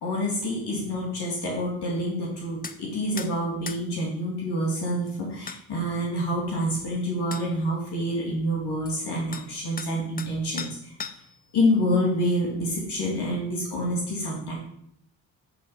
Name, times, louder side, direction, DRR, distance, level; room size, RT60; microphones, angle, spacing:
voice 1, 0.0-10.9 11.5-14.5, equal, 70° left, -4 dB, 2.3 m, -27 dB
sound 1, 2.6-2.8 3.2-3.3 3.7-3.8 5.1-5.2 5.5-5.6 6.8-6.9 7.3-7.5 8.9-9.0 9.3-9.5 9.8-10.3 10.6-11.4, left 5 dB, 20° left, 0.6 m, -37 dB
8.0 x 4.2 x 4.7 m, 0.72 s
supercardioid pair, 55°, 42 cm